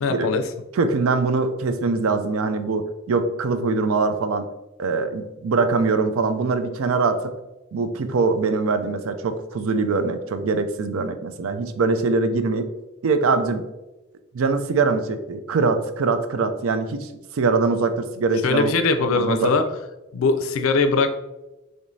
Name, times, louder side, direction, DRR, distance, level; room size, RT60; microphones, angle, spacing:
voice 1, 0.0-0.4 18.4-19.6 20.1-21.1, left 4 dB, 80° left, 8 dB, 0.4 m, -21 dB
voice 2, 0.7-4.5 4.8-7.3 7.7-12.7 13.0-13.6 14.3-18.7 19.1-19.5, right 4 dB, 80° right, 9 dB, 0.4 m, -23 dB
4.9 x 3.1 x 2.6 m, 1.0 s
head